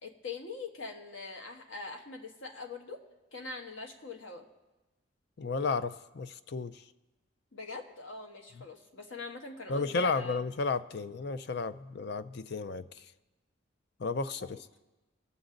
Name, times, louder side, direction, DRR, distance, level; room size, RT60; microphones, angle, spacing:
voice 1, 0.0-3.0 3.3-4.4 7.5-10.4 14.4-14.6, left 4 dB, 75° left, 3 dB, 1.4 m, -43 dB
voice 2, 5.4-6.8 9.7-12.9 14.0-14.6, left 4 dB, 55° left, 13 dB, 0.5 m, -33 dB
21.5 x 7.1 x 3.9 m, 1.1 s
head